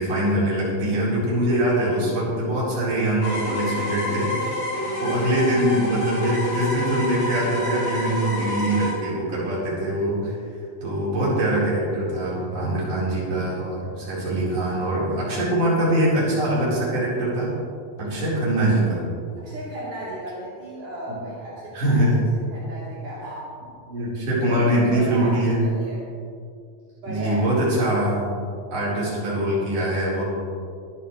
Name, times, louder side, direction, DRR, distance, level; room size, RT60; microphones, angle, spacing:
voice 1, 0.0-4.5 5.0-10.4 10.8-17.5 18.0-19.0 21.7-22.2 23.9-25.6 27.1-28.3 28.7-30.2, right 1 dB, 50° right, -7 dB, 5.3 m, -23 dB
sound 1, 3.2-8.9, left 1 dB, 40° left, 4.9 m, -28 dB
voice 2, 19.4-22.2 22.5-23.5 24.3-26.0 27.0-27.4, right 1 dB, 70° right, -9 dB, 4.9 m, -35 dB
23.5 x 11.0 x 3.2 m, 2.4 s
omnidirectional pair, 3.8 m